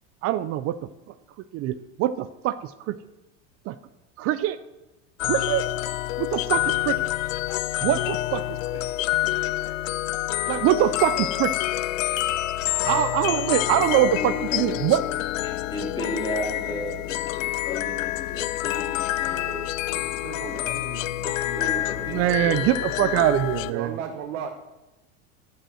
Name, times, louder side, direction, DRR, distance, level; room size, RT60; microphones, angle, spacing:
voice 1, 0.2-0.8 1.5-2.9 3.7-3.8 4.2-4.6 5.2-5.7 6.2-7.0 7.8-8.6 10.5-11.5 12.8-15.0 22.1-23.9, right 12 dB, 40° right, 14 dB, 0.4 m, -23 dB
sound 1, 5.2-23.7, left 15 dB, 85° left, 0.6 m, -27 dB
voice 2, 13.7-14.3 15.4-19.7 20.1-20.8 21.6-23.7, left 1 dB, 10° left, -2 dB, 3.0 m, -35 dB
voice 3, 19.9-22.1 23.7-24.5, right 8 dB, 80° right, 3 dB, 1.3 m, -36 dB
14.0 x 5.5 x 6.3 m, 1.0 s
supercardioid pair, 130°, 38 cm